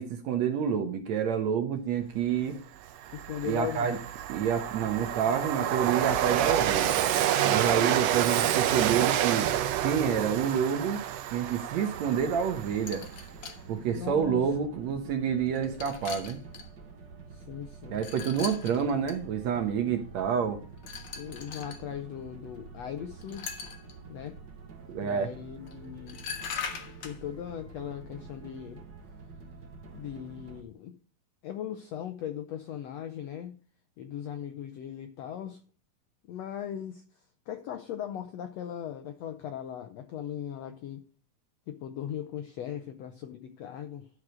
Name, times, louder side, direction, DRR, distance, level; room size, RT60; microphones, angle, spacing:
voice 1, 0.0-2.6 3.5-4.0 4.3-7.0 7.4-9.5 9.8-11.0 11.3-13.0 13.7-16.4 17.9-20.6 24.9-25.3, right 7 dB, 65° right, 2.0 m, -28 dB
Train, 2.3-2.4 2.8-13.2, right 11 dB, 85° right, 1.4 m, -28 dB
voice 2, 3.1-4.0 13.9-14.5 17.3-18.0 21.2-23.5 24.1-24.4 25.0-26.2 27.0-28.8 29.9-31.0 31.4-33.6 34.0-35.6 36.3-37.0 37.5-41.0 41.7-44.1, left 10 dB, 75° left, 1.5 m, -38 dB
sound 1, 11.8-30.6, right 4 dB, 45° right, 1.6 m, -48 dB
sound 2, 12.9-13.6 14.5-14.6 15.4-16.7 17.9-19.2 20.8-21.8 23.2-23.9 25.7-25.8 26.1-27.2, left 6 dB, 55° left, 1.7 m, -40 dB
12.0 x 4.9 x 6.2 m
omnidirectional pair, 3.9 m